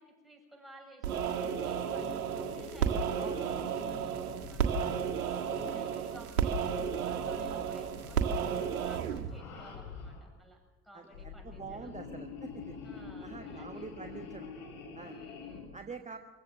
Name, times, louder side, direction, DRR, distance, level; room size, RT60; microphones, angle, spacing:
voice 1, 0.0-4.9 5.3-8.3 8.8-12.0 12.8-14.4 15.0-15.7, right 1 dB, ahead, 2 dB, 7.3 m, -56 dB
sound 1, 1.0-9.4, right 7 dB, 75° right, 1.7 m, -33 dB
sound 2, 1.4-6.0 6.5-7.6 7.9-8.8 9.2-10.3 11.0-15.7, left 4 dB, 70° left, 7.9 m, -46 dB
voice 2, 10.9-12.7 13.2-14.5 14.9-15.2 15.7-16.2, right 4 dB, 15° right, 4 dB, 1.4 m, -46 dB
26.0 x 15.5 x 7.5 m, 1.2 s
figure-of-eight pair, 60°, 44 cm